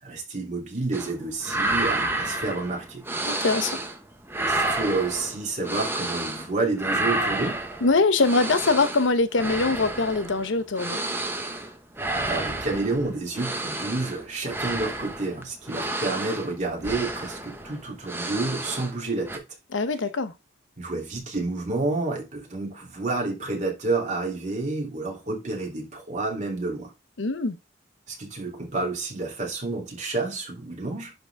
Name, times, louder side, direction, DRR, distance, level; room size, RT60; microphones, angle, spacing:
voice 1, 0.0-3.0 4.4-7.6 12.3-19.4 20.8-26.9 28.1-31.1, right 3 dB, 40° right, 2.8 m, -29 dB
sound 1, 0.9-1.1 1.4-4.0 4.3-6.5 6.8-19.0 19.2-19.4, right 2 dB, 10° right, 1.0 m, -30 dB
voice 2, 3.3-3.8 7.8-11.0 19.7-20.3 27.2-27.6, left 3 dB, 80° left, 0.8 m, -23 dB
11.0 x 4.0 x 3.4 m
head